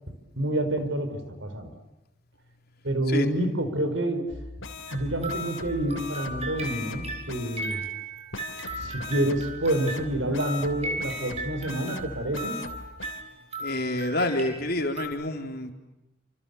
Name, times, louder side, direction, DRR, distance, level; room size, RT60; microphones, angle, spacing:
voice 1, 0.4-1.7 2.8-4.3 4.9-7.8 8.7-12.6, right 1 dB, 75° right, 9 dB, 5.2 m, -28 dB
sound 1, 4.3-7.7 8.3-13.2, left 3 dB, 85° left, 3.3 m, -40 dB
sound 2, 4.9-15.1, right 2 dB, 35° right, 5.8 m, -37 dB
voice 2, 13.6-15.7, left 1 dB, 50° left, 4 dB, 3.9 m, -28 dB
30.0 x 28.0 x 7.1 m, 0.99 s
head